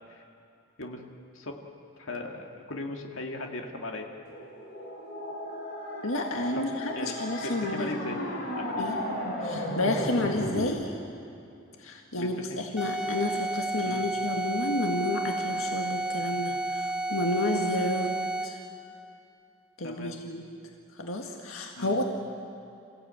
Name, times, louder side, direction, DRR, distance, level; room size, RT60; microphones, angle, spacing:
voice 1, 2.0-4.1 6.5-8.2 8.6-8.9 12.2-12.6 13.8-14.1 19.8-20.2 21.8-22.0, left 2 dB, 70° left, 2 dB, 2.2 m, -38 dB
sound 1, 4.3-10.8, left 1 dB, 55° left, 5.3 m, -35 dB
voice 2, 6.0-8.2 8.8-9.0 9.4-10.9 11.8-18.1 18.4-18.6 19.8-20.4 21.0-22.0, left 1 dB, 85° left, 2 dB, 1.8 m, -30 dB
sound 2, 12.8-18.7, right 2 dB, 5° right, 3.5 m, -31 dB
28.0 x 15.5 x 8.9 m, 2.6 s
head